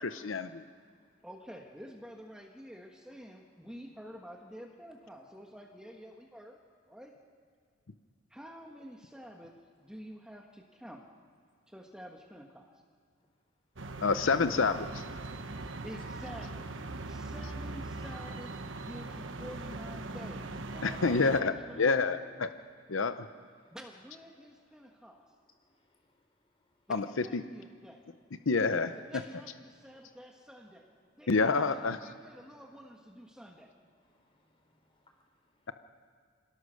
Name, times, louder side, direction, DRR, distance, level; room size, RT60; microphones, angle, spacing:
voice 1, 0.0-0.6 14.0-15.0 20.8-22.5 22.9-23.3 26.9-27.4 28.5-28.9 31.3-32.0, left 4 dB, 85° left, 0.8 m, -28 dB
voice 2, 0.7-1.2 5.1-5.2 22.6-22.7 23.4-23.8 24.7-26.9 28.4-28.5 29.7-30.1 31.0-31.3 33.3-33.4 33.9-35.7, left 2 dB, 30° left, 3.8 m, -73 dB
voice 3, 1.2-6.6 6.9-7.1 8.3-9.5 9.8-11.1 11.7-12.7 15.8-16.7 17.0-21.2 21.5-22.2 23.7-25.2 26.9-28.0 28.7-30.9 31.2-33.7, equal, 5° right, 1.4 m, -49 dB
sound 1, 13.8-21.4, right 2 dB, 75° right, 1.2 m, -41 dB
26.5 x 18.0 x 6.4 m
head